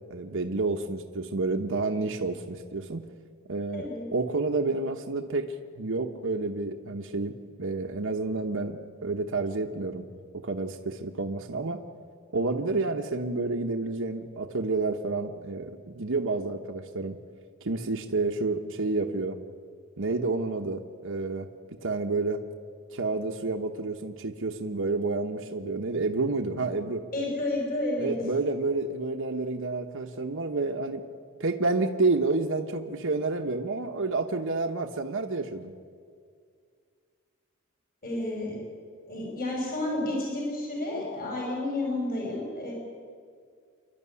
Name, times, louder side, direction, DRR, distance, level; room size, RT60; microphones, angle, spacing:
voice 1, 0.1-3.1 3.5-10.1 10.4-11.8 12.3-17.2 17.6-19.4 20.0-21.5 21.8-22.4 22.9-27.0 28.0-31.0 31.4-35.7, right 3 dB, 65° right, 5 dB, 1.1 m, -29 dB
voice 2, 3.7-4.0 27.1-28.1 38.0-38.6 39.1-42.7, left 1 dB, 45° left, -1 dB, 6.0 m, -31 dB
27.0 x 12.0 x 9.7 m, 2.1 s
head